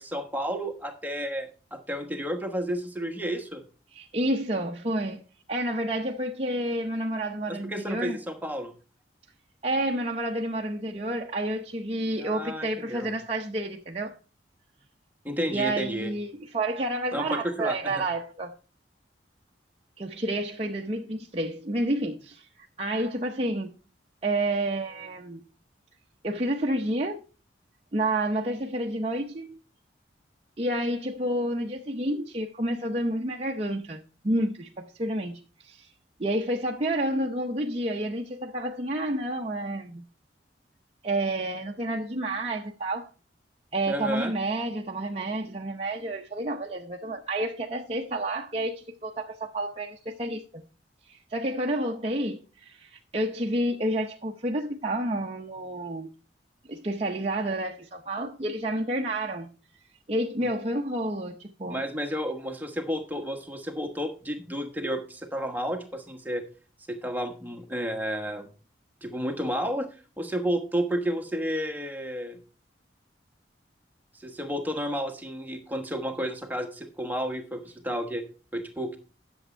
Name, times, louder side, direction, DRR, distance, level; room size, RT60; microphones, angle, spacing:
voice 1, 0.0-3.6 7.5-8.7 12.2-13.1 15.2-16.1 17.1-18.0 43.9-44.3 60.4-60.5 61.7-66.4 66.9-68.5 69.0-69.9 70.2-72.4 74.1-78.2 78.5-79.0, equal, 10° right, 1.2 m, -31 dB
voice 2, 3.9-5.2 5.5-8.2 9.6-14.2 15.5-18.5 20.0-22.5 22.8-23.7 24.2-25.4 26.2-27.2 27.9-29.6 30.6-35.9 36.2-40.0 41.0-43.1 43.7-50.6 51.1-56.1 56.7-59.5 60.1-61.8, right 1 dB, 35° right, 0.7 m, -30 dB
10.5 x 7.1 x 4.4 m
head